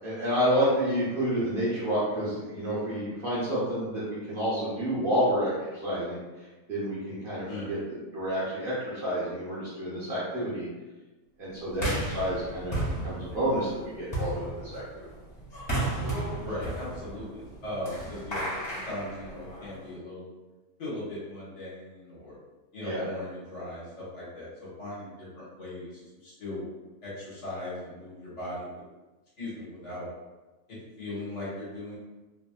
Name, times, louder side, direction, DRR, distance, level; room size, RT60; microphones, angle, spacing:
voice 1, 0.0-10.7 11.4-15.1 22.8-23.0, equal, 45° right, -9 dB, 1.0 m, -29 dB
voice 2, 7.5-7.8 16.4-20.3 20.8-22.4 22.7-26.7 27.0-28.8 29.4-30.1 30.7-32.0, left 1 dB, 55° left, -9 dB, 1.5 m, -38 dB
sound 1, 11.7-19.8, right 1 dB, 30° left, 1.7 m, -34 dB
3.3 x 2.6 x 2.3 m, 1.2 s
omnidirectional pair, 1.5 m